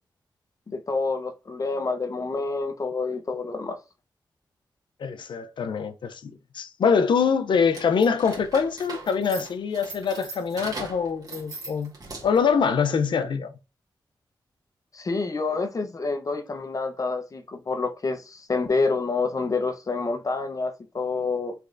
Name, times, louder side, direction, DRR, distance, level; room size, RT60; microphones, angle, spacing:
voice 1, 0.7-3.8 14.9-21.5, left 3 dB, 45° left, 0.7 m, -28 dB
voice 2, 5.0-11.9 12.2-13.5, left 6 dB, 75° left, 0.4 m, -24 dB
sound 1, 7.7-12.5, right 3 dB, 50° right, 1.4 m, -39 dB
3.4 x 3.2 x 2.5 m
cardioid pair, 65°, 8 cm